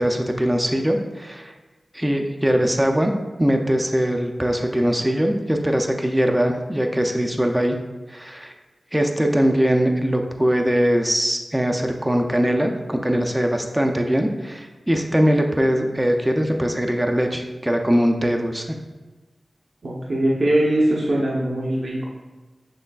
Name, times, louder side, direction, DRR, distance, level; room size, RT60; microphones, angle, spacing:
voice 1, 0.0-1.5 1.9-3.1 3.4-7.8 8.1-8.5 8.9-18.8, equal, 15° right, 3 dB, 0.5 m, -21 dB
voice 2, 19.8-22.0, right 1 dB, 65° right, -5 dB, 0.7 m, -21 dB
6.5 x 3.1 x 2.3 m, 1.2 s
cardioid pair, 45°, 0 cm